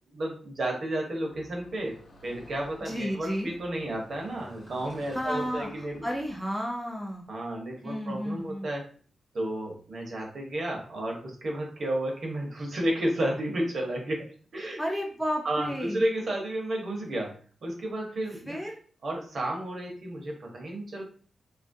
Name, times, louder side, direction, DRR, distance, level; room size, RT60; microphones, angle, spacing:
voice 1, 0.0-2.0 2.2-6.0 7.3-8.9 9.3-14.3 14.5-14.8 15.4-17.3 17.6-18.6 19.0-21.0, right 1 dB, 50° right, 0 dB, 0.8 m, -32 dB
Car passing by / Traffic noise roadway noise, 1.3-6.4, left 2 dB, 45° left, 0.7 m, -53 dB
voice 2, 2.8-3.5 5.1-7.3 7.8-8.7 14.8-16.0 18.5-18.8, equal, ahead, 0 dB, 0.4 m, -32 dB
2.8 x 2.4 x 2.6 m, 0.43 s
wide cardioid pair, 150°, 0 cm